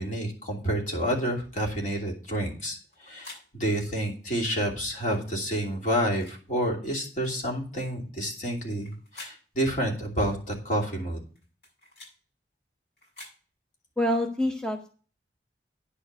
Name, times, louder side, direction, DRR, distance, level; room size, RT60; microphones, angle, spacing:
voice 1, 0.0-11.2, equal, 45° left, -1 dB, 2.9 m, -29 dB
sound 1, 1.1-1.3 2.6-3.5 4.5-4.7 5.8-6.4 7.2-7.4 8.6-9.4 10.2-10.4 11.4-12.2 13.0-13.4, left 2 dB, 75° left, 6.6 m, -49 dB
voice 2, 14.0-14.9, left 1 dB, 5° left, 3 dB, 0.7 m, -26 dB
10.0 x 4.5 x 7.9 m, 0.39 s
head